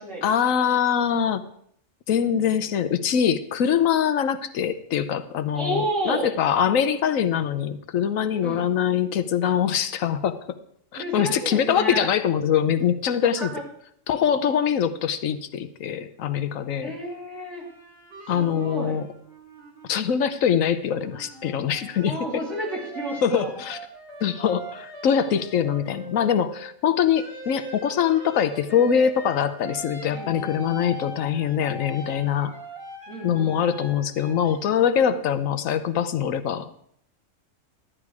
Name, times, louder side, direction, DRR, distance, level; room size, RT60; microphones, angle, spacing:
voice 1, 0.2-1.4 2.1-10.4 10.9-13.5 14.1-16.9 18.3-19.1 19.9-22.1 23.2-23.8 24.2-32.5 33.2-36.8, left 8 dB, 90° left, 12 dB, 1.2 m, -23 dB
voice 2, 5.5-6.3 8.4-8.7 10.9-12.1 13.4-13.6 16.8-17.7 18.3-19.0 22.1-23.5 30.1-30.8 33.1-33.6, right 1 dB, 65° right, -3 dB, 3.9 m, -31 dB
sound 1, 17.5-20.5 20.9-26.7 27.1-34.6, equal, 45° right, 2.7 m, -41 dB
13.0 x 10.0 x 4.8 m, 0.67 s
omnidirectional pair, 1.4 m